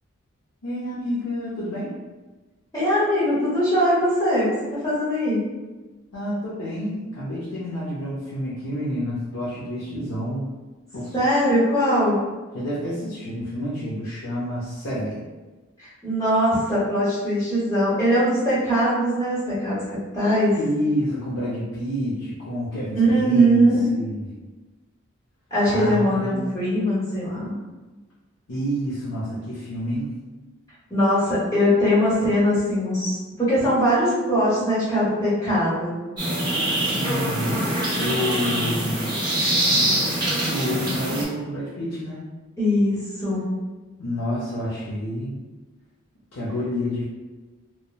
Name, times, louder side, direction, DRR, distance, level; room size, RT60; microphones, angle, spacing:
voice 1, 0.6-1.9 6.1-10.5 10.9-11.1 12.5-15.2 20.6-24.3 25.6-26.6 28.5-30.1 36.9-39.0 40.5-42.2 44.0-45.4 46.3-47.0, equal, 80° left, -8 dB, 0.6 m, -29 dB
voice 2, 2.7-5.4 11.1-12.2 15.8-20.6 22.9-23.9 25.5-27.6 30.9-35.9 42.6-43.5, equal, 15° left, -10 dB, 0.9 m, -21 dB
sound 1, 36.2-41.2, right 1 dB, 20° right, 0.6 m, -24 dB
3.0 x 2.1 x 2.3 m, 1.2 s
head